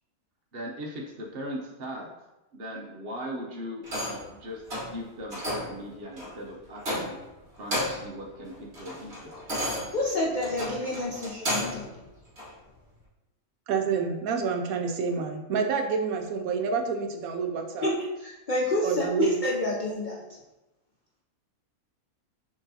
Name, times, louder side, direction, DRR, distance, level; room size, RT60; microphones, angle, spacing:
voice 1, 0.5-2.1 2.5-4.6 4.9-7.2 7.6-9.3, equal, 50° right, -1 dB, 0.7 m, -39 dB
sound 1, 3.8-4.3 4.7-5.0 5.3-5.8 6.2-6.3 6.8-7.3 7.6-8.1 8.5-11.9 12.4-12.5, equal, 35° right, 1.4 m, -32 dB
voice 2, 9.9-12.0 17.8-20.2, left 1 dB, 80° left, -3 dB, 0.4 m, -29 dB
voice 3, 13.7-17.9 18.8-19.4, right 5 dB, 75° right, 4 dB, 1.0 m, -28 dB
6.3 x 3.1 x 2.7 m, 1.0 s
omnidirectional pair, 1.6 m